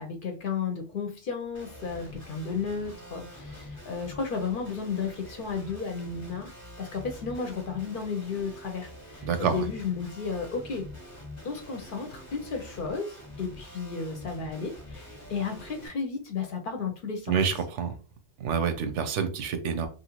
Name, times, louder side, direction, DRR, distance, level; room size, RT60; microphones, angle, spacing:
voice 1, 0.0-6.5 6.8-10.9 11.4-17.4, left 5 dB, 60° left, 4 dB, 0.6 m, -33 dB
Guitar, 1.5-15.9, left 1 dB, 20° left, 0.6 m, -46 dB
voice 2, 9.3-9.6 17.3-17.9 18.4-19.9, right 6 dB, 85° right, 8 dB, 0.9 m, -27 dB
2.9 x 2.4 x 2.9 m, 0.37 s
omnidirectional pair, 1.2 m